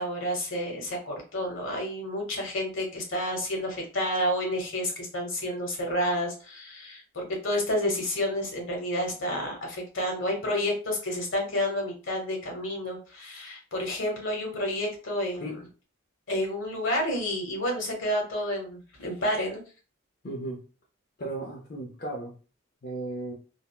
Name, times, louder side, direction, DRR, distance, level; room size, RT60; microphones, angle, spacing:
voice 1, 0.0-15.6 16.3-19.6, left 1 dB, 75° left, 0 dB, 1.0 m, -30 dB
voice 2, 20.2-20.6 21.2-22.3 22.8-23.3, right 1 dB, 50° left, -2 dB, 0.5 m, -35 dB
3.4 x 2.0 x 2.2 m, 0.36 s
head